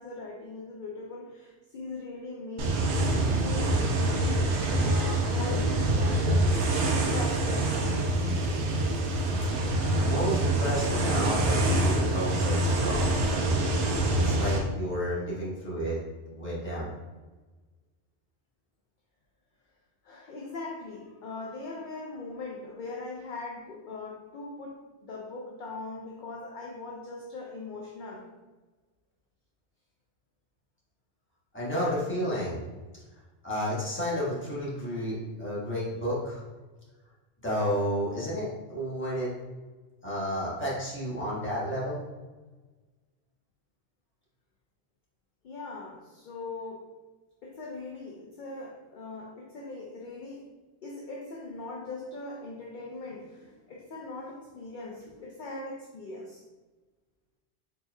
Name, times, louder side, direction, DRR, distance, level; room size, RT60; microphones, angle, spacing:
voice 1, 0.0-2.8 3.1-3.8 4.1-4.5 4.8-7.7 20.0-28.2 45.4-46.9 47.4-50.5 50.8-56.5, left 3 dB, 55° left, -2 dB, 0.6 m, -40 dB
sound 1, 2.6-14.6, right 1 dB, 80° right, 0.9 m, -25 dB
voice 2, 10.0-13.7 14.2-16.0 16.3-16.9 31.5-32.6 33.4-36.4 37.4-39.3 40.0-42.0, equal, 10° left, -7 dB, 1.0 m, -31 dB
4.3 x 3.2 x 2.3 m, 1.2 s
omnidirectional pair, 1.2 m